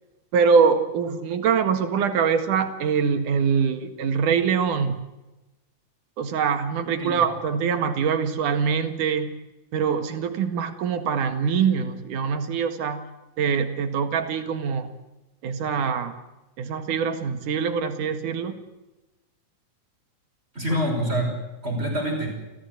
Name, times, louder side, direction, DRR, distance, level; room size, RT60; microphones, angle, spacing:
voice 1, 0.3-5.0 6.2-9.4 9.7-13.1 13.4-15.0 15.4-16.2 16.6-18.6 20.7-20.8, right 6 dB, 85° right, 7 dB, 3.3 m, -24 dB
voice 2, 20.5-22.3, equal, 20° right, 1 dB, 5.9 m, -26 dB
29.5 x 15.5 x 8.2 m, 1.0 s
omnidirectional pair, 3.5 m